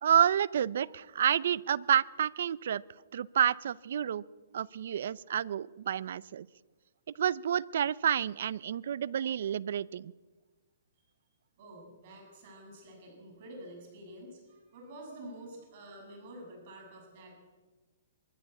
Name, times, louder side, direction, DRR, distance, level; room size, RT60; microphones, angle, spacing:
voice 1, 0.0-2.8 3.1-4.2 4.5-6.5 7.1-10.1, right 9 dB, 65° right, 21 dB, 0.6 m, -29 dB
voice 2, 11.6-17.4, right 1 dB, 45° right, 0 dB, 7.6 m, -48 dB
24.0 x 14.0 x 8.3 m, 1.3 s
hypercardioid pair, 155°, 0 cm